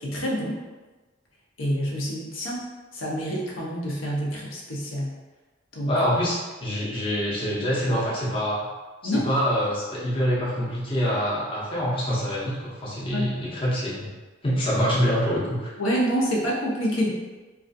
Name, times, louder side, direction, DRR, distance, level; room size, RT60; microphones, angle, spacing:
voice 1, 0.0-0.6 1.6-2.6 2.9-5.1 5.7-5.9 9.0-9.3 13.1-13.4 15.8-17.1, equal, 85° left, -4 dB, 0.6 m, -27 dB
voice 2, 5.9-6.4 6.6-8.7 9.0-14.1 14.4-15.7, equal, 30° left, -6 dB, 0.5 m, -25 dB
2.3 x 2.3 x 2.5 m, 1.2 s
head